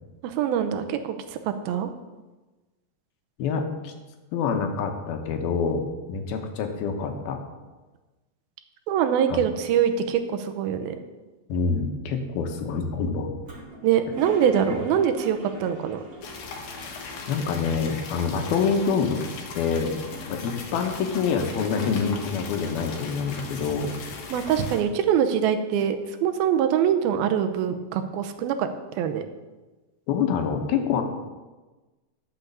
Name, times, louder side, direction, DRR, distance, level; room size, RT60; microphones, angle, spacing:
voice 1, 0.2-1.9 8.9-10.9 13.8-16.0 24.3-28.7 29.0-29.2, right 8 dB, 90° right, 8 dB, 2.6 m, -24 dB
voice 2, 3.4-3.9 4.3-7.4 9.3-9.4 11.5-13.3 17.3-19.2 19.5-19.9 20.3-23.9 30.1-31.0, left 5 dB, 85° left, 4 dB, 3.0 m, -26 dB
Toilet flush, 13.4-17.8 18.1-18.2 18.4-19.2 19.7-22.6, right 1 dB, 35° right, 1.6 m, -42 dB
sound 1, 16.2-24.8, left 4 dB, 65° left, 2.4 m, -38 dB
11.0 x 7.0 x 6.9 m, 1.2 s
omnidirectional pair, 4.3 m